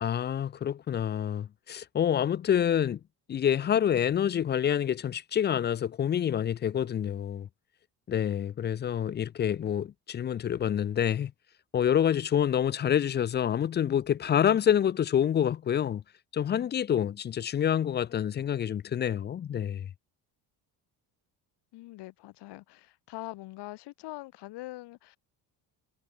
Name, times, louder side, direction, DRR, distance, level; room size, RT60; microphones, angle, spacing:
voice 1, 0.0-3.0 3.3-7.5 8.1-11.3 11.7-16.0 16.3-19.9, left 9 dB, 30° left, 0.4 m, -27 dB
voice 2, 21.7-25.2, left 18 dB, 90° left, 6.9 m, -43 dB
cardioid pair, 125°, 39 cm